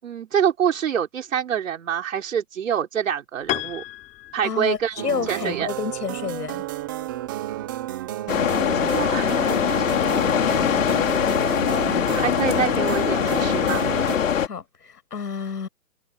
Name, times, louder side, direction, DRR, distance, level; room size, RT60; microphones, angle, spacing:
voice 1, 0.0-3.8 4.3-5.0 5.3-5.7 8.8-10.4 12.1-13.9, right 8 dB, 50° right, 5.6 m, -26 dB
Piano, 3.5-5.2, left 16 dB, 15° left, 6.7 m, -32 dB
voice 2, 4.4-6.6 14.4-15.7, left 6 dB, 75° left, 7.7 m, -30 dB
sound 1, 5.0-14.2, right 14 dB, 15° right, 1.0 m, -32 dB
sound 2, 8.3-14.5, left 8 dB, 50° left, 3.9 m, -22 dB
hypercardioid pair, 165°, 48 cm